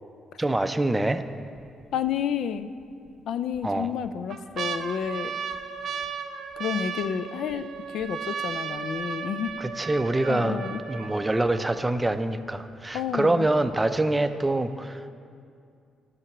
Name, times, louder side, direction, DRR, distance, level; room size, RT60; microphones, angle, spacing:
voice 1, 0.4-1.2 3.6-3.9 9.6-15.1, right 2 dB, 15° right, 10 dB, 0.5 m, -25 dB
sound 1, 1.1-1.6 2.1-2.2 3.1-3.6 4.0-12.0 12.7-12.8 13.0-13.5 13.9-14.0, right 6 dB, 60° right, 0.8 m, -35 dB
voice 2, 1.9-2.7 3.3-5.5 6.6-9.5 10.3-10.8 12.9-13.5, left 8 dB, 75° left, 12 dB, 0.4 m, -30 dB
11.5 x 5.7 x 6.0 m, 2.4 s
cardioid pair, 90°, 0 cm